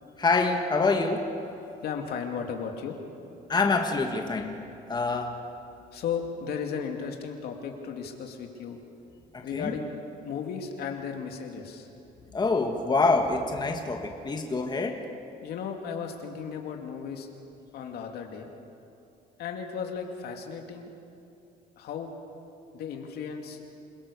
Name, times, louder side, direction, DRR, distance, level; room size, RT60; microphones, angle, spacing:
voice 1, 0.2-1.4 3.5-4.6 4.9-5.4 9.3-9.7 12.3-15.1, left 3 dB, 25° left, 3 dB, 1.9 m, -26 dB
voice 2, 1.8-3.0 5.9-8.8 9.4-9.9 10.2-11.9 15.4-17.3 17.7-18.5 19.4-20.9 21.8-22.1 22.7-23.6, left 6 dB, 70° left, 3 dB, 2.6 m, -35 dB
28.0 x 17.0 x 7.0 m, 2.7 s
cardioid pair, 110°, 17 cm